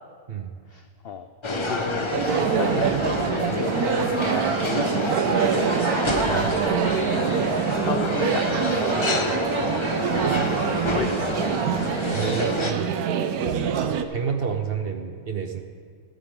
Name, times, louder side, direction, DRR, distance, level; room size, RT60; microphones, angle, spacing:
voice 1, 0.7-1.3 1.7-5.7 7.8-8.5 8.9-10.0 10.9-11.8 12.2-12.5 12.8-13.0 13.8-14.0, left 8 dB, 80° left, 9 dB, 0.5 m, -35 dB
sound 1, 1.4-12.7, left 2 dB, 30° left, 0.6 m, -27 dB
sound 2, 2.1-14.0, right 8 dB, 85° right, 1.2 m, -25 dB
voice 2, 6.3-6.6 12.1-12.8 13.9-15.6, right 7 dB, 55° right, 6 dB, 0.7 m, -29 dB
13.5 x 13.0 x 3.7 m, 2.2 s
omnidirectional pair, 1.6 m